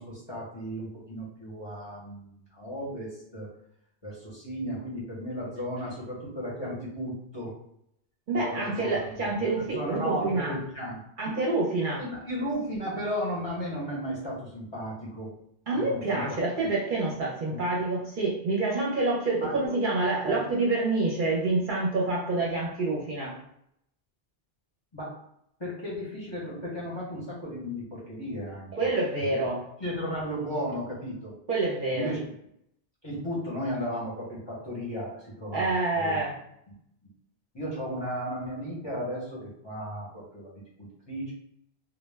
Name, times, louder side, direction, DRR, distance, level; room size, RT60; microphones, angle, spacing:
voice 1, 0.0-3.5 4.0-7.5 8.3-11.0 12.0-15.3 15.7-16.2 17.5-17.7 19.4-19.6 20.2-20.5 24.9-25.1 25.6-28.9 29.3-29.5 29.8-31.3 31.9-32.3 33.0-36.2 36.7-36.8 37.5-41.3, equal, 30° left, -7 dB, 0.6 m, -35 dB
voice 2, 8.3-10.6 11.2-12.0 15.7-23.4 28.8-29.6 31.5-32.1 35.5-36.4, right 2 dB, 55° right, -3 dB, 0.7 m, -27 dB
2.1 x 2.1 x 3.2 m, 0.75 s
omnidirectional pair, 1.1 m